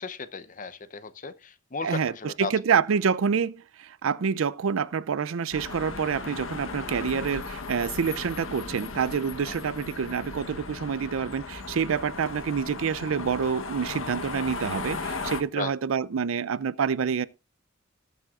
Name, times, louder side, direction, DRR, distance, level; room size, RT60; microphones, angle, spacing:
voice 1, 0.0-2.5 9.4-9.5 15.5-15.7, left 4 dB, 40° left, 0.6 m, -35 dB
voice 2, 1.8-17.3, right 6 dB, 80° right, 0.5 m, -27 dB
sound 1, 5.5-15.4, left 3 dB, 75° left, 1.0 m, -36 dB
19.0 x 7.2 x 2.4 m
head